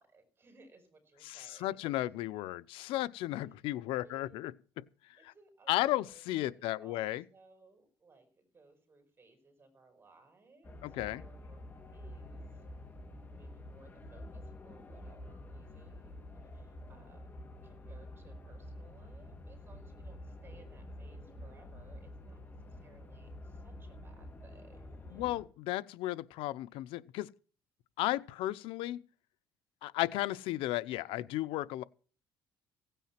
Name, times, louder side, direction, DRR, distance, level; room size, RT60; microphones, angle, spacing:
voice 1, 0.0-2.1 3.9-4.4 5.2-6.2 6.5-11.6 11.9-12.6 13.3-25.3, right 3 dB, 25° right, 5.4 m, -62 dB
voice 2, 1.2-4.5 5.7-7.2 10.8-11.2 25.1-27.3 28.0-29.0 29.8-31.8, left 16 dB, 80° left, 0.8 m, -34 dB
sound 1, 10.6-25.4, left 1 dB, 20° left, 2.5 m, -48 dB
16.5 x 9.1 x 5.9 m
cardioid pair, 125°, 9 cm